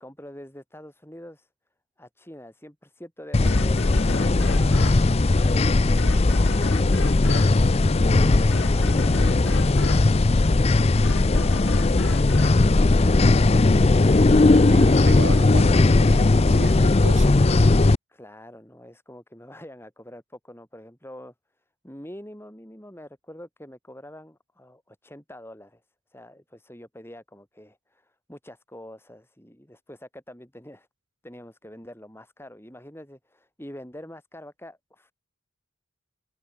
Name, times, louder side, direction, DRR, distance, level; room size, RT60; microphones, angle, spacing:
voice 1, 0.0-1.5 2.0-4.0 18.1-21.3 21.8-25.8 26.1-30.9 31.2-35.1, left 1 dB, 10° left, 3.9 m, -45 dB
sound 1, 3.3-18.0, left 2 dB, 30° left, 0.5 m, -18 dB
sound 2, 3.5-13.7, left 2 dB, 75° left, 2.2 m, -36 dB
voice 2, 14.1-17.4, right 2 dB, 65° right, 3.2 m, -36 dB
head